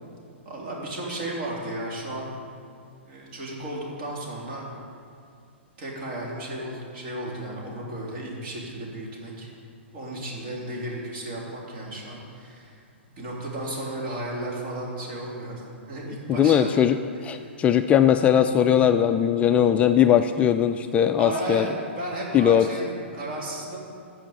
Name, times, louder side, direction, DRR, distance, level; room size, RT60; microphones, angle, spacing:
voice 1, 0.4-2.3 3.0-4.7 5.8-9.5 9.9-12.8 13.1-15.6 15.9-16.7 21.2-23.8, right 1 dB, 45° right, -3 dB, 3.8 m, -34 dB
voice 2, 16.3-17.0 17.2-21.7 22.3-22.7, left 9 dB, 20° left, 8 dB, 0.4 m, -19 dB
14.5 x 5.5 x 8.4 m, 2.3 s
figure-of-eight pair, 115°, 7 cm